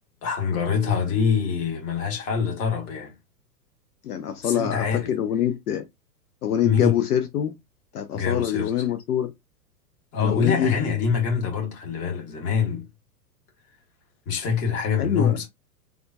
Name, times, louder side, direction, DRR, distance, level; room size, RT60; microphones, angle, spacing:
voice 1, 0.2-3.1 4.4-5.1 6.6-7.0 8.1-8.9 10.1-12.9 14.3-15.5, left 6 dB, 30° left, 1.2 m, -25 dB
voice 2, 4.0-5.8 6.4-7.5 7.9-9.3 10.2-10.7 15.0-15.4, left 10 dB, 70° left, 0.6 m, -25 dB
3.5 x 2.3 x 2.6 m
hypercardioid pair, 110°, 48 cm